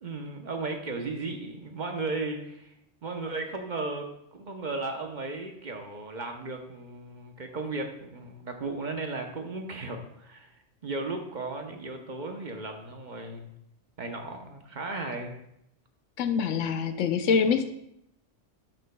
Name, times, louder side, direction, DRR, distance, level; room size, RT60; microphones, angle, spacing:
voice 1, 0.0-2.7 3.0-10.5 10.8-13.5 14.0-15.4, right 3 dB, 45° right, 4 dB, 0.8 m, -35 dB
voice 2, 16.2-17.7, left 6 dB, 90° left, 10 dB, 1.0 m, -25 dB
11.5 x 6.7 x 2.2 m, 0.79 s
omnidirectional pair, 1.2 m